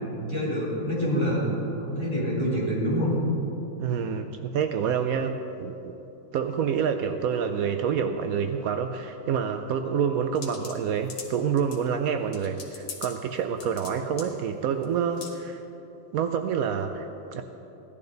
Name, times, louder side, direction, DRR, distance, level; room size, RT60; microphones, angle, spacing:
voice 1, 0.3-1.5 1.8-3.2, equal, 15° left, -8 dB, 3.6 m, -26 dB
voice 2, 3.8-5.9 6.3-15.6 16.1-17.4, right 7 dB, 90° right, 7 dB, 0.7 m, -27 dB
sound 1, 10.4-11.8 12.3-13.1 13.4-13.9 14.2-14.3 14.8-14.9 15.2-15.4, left 4 dB, 75° left, 2.3 m, -40 dB
17.0 x 12.0 x 3.9 m, 3.0 s
omnidirectional pair, 2.1 m